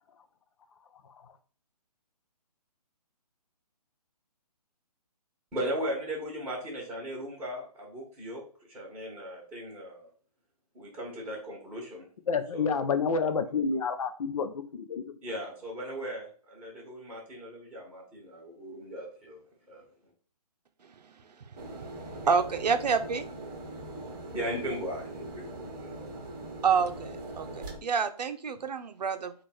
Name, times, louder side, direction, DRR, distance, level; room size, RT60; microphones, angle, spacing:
voice 1, 5.5-8.4 8.7-10.1 10.7-12.0 12.5-13.0 15.2-19.4 19.7-19.8 24.3-26.1, equal, 10° right, -8 dB, 1.2 m, -37 dB
voice 2, 12.3-15.0, left 5 dB, 55° left, 8 dB, 0.6 m, -29 dB
sound 1, 21.6-27.8, right 2 dB, 30° right, 1.0 m, -41 dB
voice 3, 22.2-23.2 26.6-29.3, right 6 dB, 80° right, 8 dB, 0.6 m, -28 dB
3.1 x 2.5 x 4.3 m, 0.42 s
hypercardioid pair, 145°, 21 cm